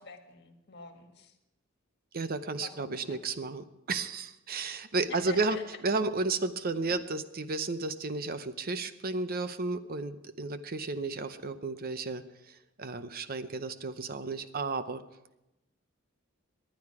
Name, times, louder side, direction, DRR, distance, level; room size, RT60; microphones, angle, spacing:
voice 1, 0.0-1.3 2.6-3.2 5.1-5.6, left 4 dB, 55° left, 5 dB, 1.7 m, -46 dB
voice 2, 2.1-5.6 5.8-15.0, right 3 dB, 45° right, 11 dB, 0.7 m, -33 dB
19.0 x 10.5 x 4.8 m, 0.91 s
head